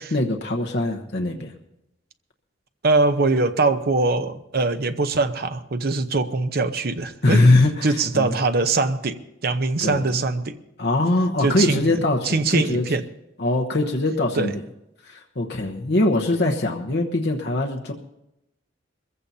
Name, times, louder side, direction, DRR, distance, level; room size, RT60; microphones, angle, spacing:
voice 1, 0.1-1.5 7.2-8.4 9.8-10.0 10.8-12.8 13.4-14.6 15.0-17.9, left 2 dB, 55° left, 2 dB, 1.1 m, -22 dB
voice 2, 2.8-7.4 7.8-9.2 9.4-10.6 11.4-13.0 14.3-14.5, right 3 dB, 50° right, 9 dB, 0.8 m, -22 dB
22.5 x 15.0 x 2.8 m, 0.86 s
head